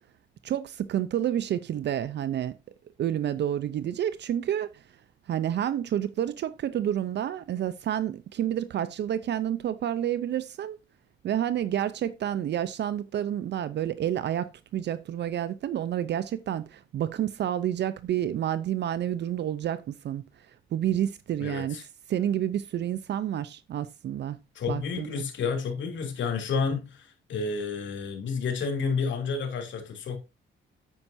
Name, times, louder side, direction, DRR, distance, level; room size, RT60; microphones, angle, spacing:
voice 1, 0.4-2.6 3.0-4.8 5.3-10.8 11.2-20.2 20.7-21.8 22.1-24.4 24.7-25.2, right 10 dB, 60° right, 0.6 m, -29 dB
voice 2, 21.4-21.8 24.5-30.2, left 5 dB, 70° left, 2.9 m, -30 dB
9.3 x 8.6 x 2.6 m
cardioid pair, 90°, 20 cm